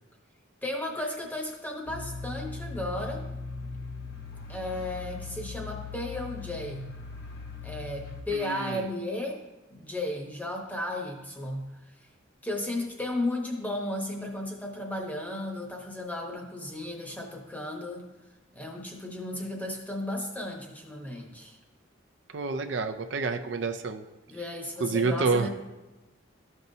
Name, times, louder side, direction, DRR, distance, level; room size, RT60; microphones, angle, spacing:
voice 1, 0.6-3.3 4.5-6.9 7.6-9.4 9.7-11.7 12.4-18.0 18.5-21.6 24.3-25.5, left 1 dB, 10° left, 0 dB, 0.9 m, -34 dB
sound 1, 1.9-8.2, left 4 dB, 50° left, 1.0 m, -39 dB
voice 2, 8.3-8.9 22.3-24.0 24.8-25.5, right 4 dB, 60° right, 6 dB, 0.4 m, -28 dB
13.0 x 5.4 x 2.7 m, 1.1 s
head